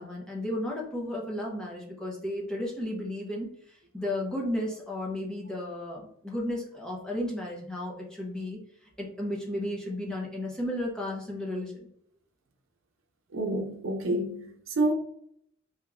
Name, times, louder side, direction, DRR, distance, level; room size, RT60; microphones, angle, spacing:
voice 1, 0.0-8.6 9.0-11.9, left 1 dB, 5° left, 0.7 m, -34 dB
voice 2, 13.3-14.9, right 1 dB, 70° right, 0.7 m, -28 dB
3.4 x 2.8 x 2.3 m
head